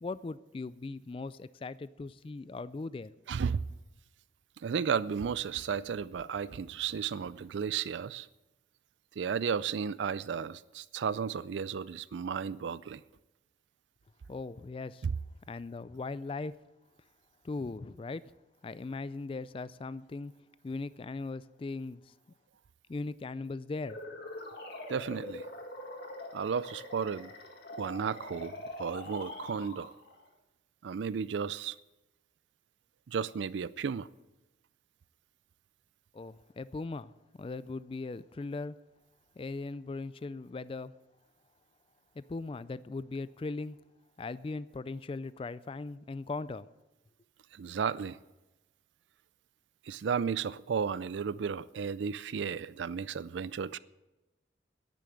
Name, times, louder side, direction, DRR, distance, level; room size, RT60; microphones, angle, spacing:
voice 1, 0.0-3.1 14.3-15.1 15.5-16.5 17.4-18.2 18.6-20.3 20.6-22.1 22.9-24.2 36.1-38.8 39.4-40.9 42.2-43.8 44.2-46.7, left 3 dB, 30° left, 0.3 m, -39 dB
voice 2, 3.3-3.6 4.6-8.3 9.2-13.0 15.0-15.1 24.9-25.5 26.3-27.3 27.8-29.9 30.8-31.8 33.1-34.1 47.5-48.2 49.8-53.8, right 6 dB, 75° right, 0.4 m, -33 dB
sound 1, 23.7-30.2, left 1 dB, 60° left, 2.0 m, -44 dB
10.5 x 9.3 x 7.7 m
head